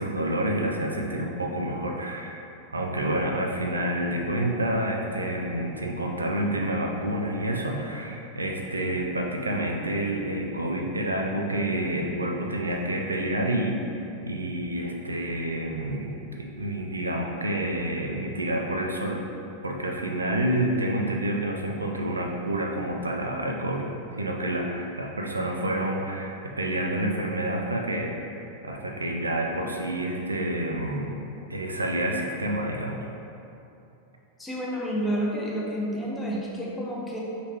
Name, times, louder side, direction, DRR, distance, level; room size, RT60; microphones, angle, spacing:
voice 1, 0.0-2.5 2.7-13.8 14.2-16.1 16.4-19.2 19.6-31.2 31.5-33.1, right 1 dB, 80° right, 1 dB, 0.4 m, -28 dB
voice 2, 34.4-37.2, equal, 10° left, -4 dB, 0.8 m, -29 dB
5.0 x 3.2 x 2.8 m, 2.8 s
figure-of-eight pair, 90°, 0 cm